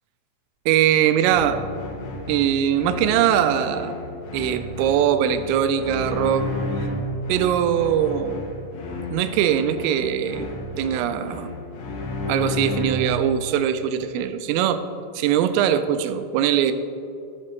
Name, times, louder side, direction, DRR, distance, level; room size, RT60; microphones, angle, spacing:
voice 1, 0.7-1.6 2.3-4.0 4.3-6.5 7.3-8.4 9.1-10.5 10.8-11.5 12.3-14.8 15.2-16.7, right 10 dB, 85° right, 10 dB, 3.1 m, -21 dB
sound 1, 1.2-13.3, left 2 dB, 90° left, 1.9 m, -32 dB
12.0 x 11.5 x 3.1 m, 2.6 s
omnidirectional pair, 6.0 m